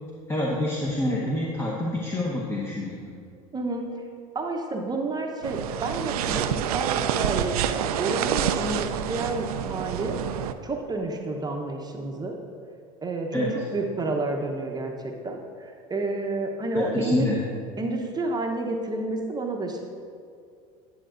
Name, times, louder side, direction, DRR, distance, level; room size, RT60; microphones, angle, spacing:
voice 1, 0.3-3.1 13.3-13.6 16.7-17.4, left 1 dB, 15° left, -3 dB, 1.0 m, -27 dB
voice 2, 3.5-4.0 4.3-10.2 10.6-12.4 13.0-13.5 13.7-14.9 15.2-17.3 17.8-19.8, right 2 dB, 20° right, 2 dB, 0.9 m, -30 dB
sound 1, 5.4-10.5, right 9 dB, 85° right, 0.4 m, -27 dB
9.9 x 7.7 x 2.5 m, 2.3 s
hypercardioid pair, 85°, 19 cm